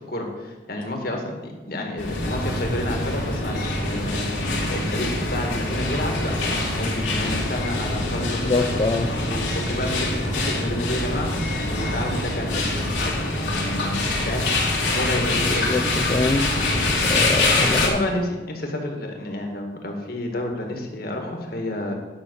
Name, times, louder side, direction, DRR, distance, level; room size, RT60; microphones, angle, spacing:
voice 1, 0.0-8.7 9.3-11.3 11.7-12.7 13.0-14.5 14.8-15.7 17.6-21.9, left 1 dB, 55° left, 2 dB, 1.7 m, -30 dB
sound 1, 2.0-17.9, left 2 dB, 90° left, 2.2 m, -24 dB
voice 2, 8.2-9.1 14.2-14.3 15.7-16.5 17.0-18.0, left 3 dB, 25° left, 4 dB, 0.4 m, -25 dB
10.0 x 5.8 x 6.4 m, 1.2 s
head